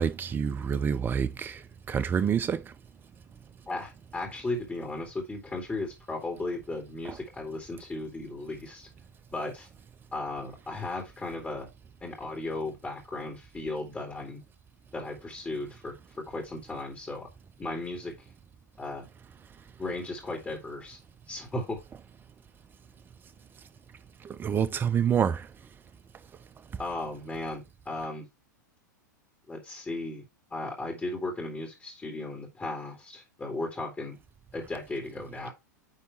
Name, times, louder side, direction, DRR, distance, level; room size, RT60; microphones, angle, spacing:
voice 1, 0.0-1.6 1.9-2.7 7.0-7.2 24.2-25.5, right 7 dB, 20° right, 0.6 m, -27 dB
voice 2, 3.7-8.9 9.3-9.7 10.1-11.7 12.0-14.4 14.9-15.9 16.3-17.3 17.6-18.1 18.8-19.1 19.8-21.0 21.3-21.8 26.8-28.2 29.5-30.2 30.5-34.2 34.5-35.5, left 2 dB, 15° left, 2.4 m, -36 dB
9.8 x 3.6 x 4.1 m
figure-of-eight pair, 95°, 10 cm